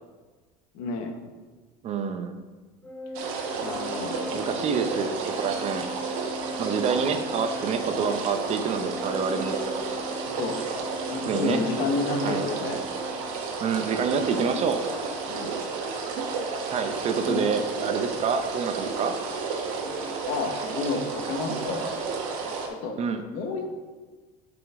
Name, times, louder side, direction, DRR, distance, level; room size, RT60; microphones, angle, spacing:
voice 1, 0.7-1.1 3.6-4.4 6.4-6.6 10.3-10.6 11.1-12.8 15.3-15.6 17.3-17.5 20.2-21.9 22.7-23.0 23.3-23.7, left 3 dB, 65° left, 4 dB, 1.3 m, -30 dB
voice 2, 1.8-2.4 4.3-5.8 6.6-10.0 11.3-11.6 12.2-12.4 13.6-14.8 16.7-19.1 23.0-23.2, right 6 dB, 40° right, 7 dB, 0.7 m, -27 dB
Organ, 2.8-13.6, left 1 dB, 10° left, 0.8 m, -40 dB
sound 1, 3.1-22.7, right 4 dB, 85° right, 1.3 m, -32 dB
7.9 x 5.2 x 3.7 m, 1.3 s
supercardioid pair, 125°, 17 cm